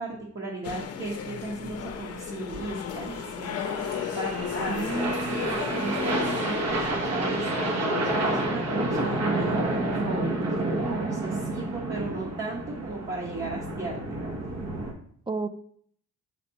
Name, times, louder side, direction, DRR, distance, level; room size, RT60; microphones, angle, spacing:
voice 1, 0.0-3.6 4.2-14.2, right 2 dB, 40° right, -2 dB, 1.2 m, -36 dB
sound 1, 0.6-7.0, left 8 dB, 55° left, 0.6 m, -35 dB
sound 2, 1.6-14.9, right 1 dB, 60° right, 1.2 m, -29 dB
voice 2, 4.7-6.3 15.3-15.5, right 3 dB, 15° right, 10 dB, 0.3 m, -32 dB
6.6 x 5.1 x 2.9 m, 0.62 s
cardioid pair, 90°, 30 cm